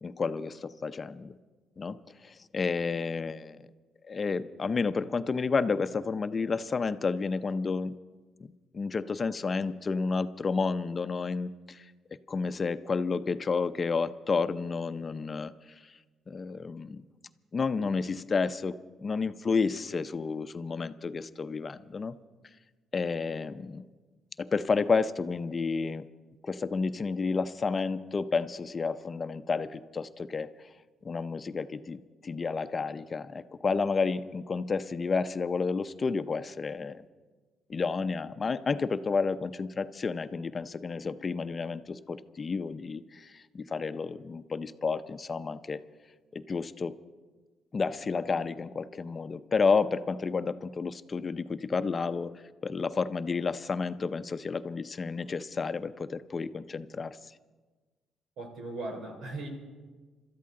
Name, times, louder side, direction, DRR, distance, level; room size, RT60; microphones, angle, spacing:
voice 1, 0.0-1.4 1.8-2.0 2.2-3.6 4.1-7.9 8.4-11.8 12.3-15.5 16.3-17.0 17.5-22.2 22.9-23.8 24.4-26.0 26.4-30.5 31.0-37.0 37.7-45.8 46.3-47.0 47.7-57.2, left 4 dB, 35° left, 11 dB, 0.6 m, -31 dB
voice 2, 58.4-59.5, right 2 dB, 80° right, 2 dB, 3.7 m, -38 dB
26.0 x 13.5 x 3.8 m, 1.4 s
cardioid pair, 90°, 0 cm